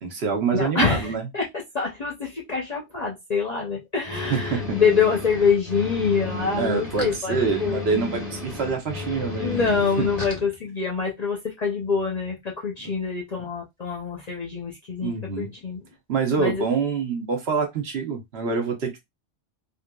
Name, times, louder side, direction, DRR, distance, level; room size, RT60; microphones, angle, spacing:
voice 1, 0.0-1.3 4.3-4.8 6.6-9.6 10.0-10.1 12.8-12.9 15.0-15.5 16.1-19.0, right 5 dB, 60° right, 1.0 m, -26 dB
voice 2, 0.5-1.5 1.7-7.8 9.4-15.8 16.4-16.6, left 5 dB, 45° left, 0.6 m, -25 dB
sound 1, 4.0-10.4, left 3 dB, 25° right, 1.3 m, -33 dB
3.6 x 2.5 x 2.2 m
omnidirectional pair, 1.2 m